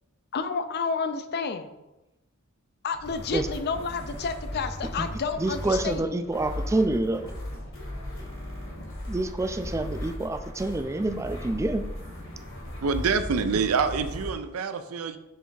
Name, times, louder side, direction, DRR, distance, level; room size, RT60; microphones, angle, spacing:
voice 1, 0.3-1.7 2.8-6.1, left 5 dB, 50° left, 9 dB, 0.5 m, -30 dB
sound 1, 2.9-14.3, left 1 dB, 70° left, 1.8 m, -37 dB
voice 2, 5.4-7.3 9.1-11.8, right 2 dB, 15° right, 9 dB, 0.3 m, -27 dB
voice 3, 12.8-15.2, right 5 dB, 80° right, 9 dB, 0.5 m, -26 dB
6.4 x 3.4 x 4.7 m, 0.96 s
head